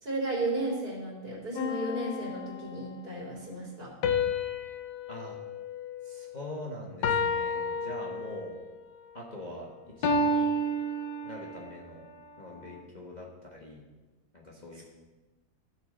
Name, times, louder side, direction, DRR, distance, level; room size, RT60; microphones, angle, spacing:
voice 1, 0.0-3.9 14.8-14.9, right 2 dB, 65° right, -5 dB, 3.7 m, -34 dB
sound 1, 1.6-3.0 4.0-6.5 7.0-8.6 10.0-11.7, left 2 dB, 80° left, 1.4 m, -31 dB
voice 2, 6.0-8.6 9.1-9.7 9.9-10.5 11.2-12.1 12.4-13.8 14.3-14.8, left 1 dB, 30° left, -3 dB, 1.3 m, -43 dB
14.5 x 6.4 x 4.2 m, 1.2 s
omnidirectional pair, 1.8 m